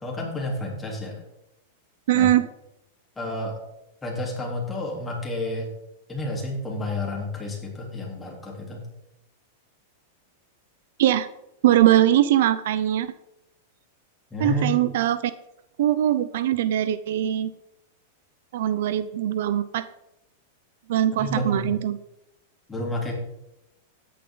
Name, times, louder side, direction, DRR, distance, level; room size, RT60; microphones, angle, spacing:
voice 1, 0.0-1.2 2.1-2.3 3.2-3.6 4.0-5.7 6.1-8.8 14.3-14.8 21.2-21.7 22.7-23.1, left 1 dB, 10° left, -2 dB, 3.6 m, -30 dB
voice 2, 2.1-2.5 11.0-11.3 11.6-13.1 14.4-15.2 15.8-17.5 18.5-19.9 20.9-22.0, right 12 dB, 70° right, 15 dB, 0.6 m, -21 dB
13.0 x 10.0 x 4.0 m, 0.85 s
supercardioid pair, 140°, 0 cm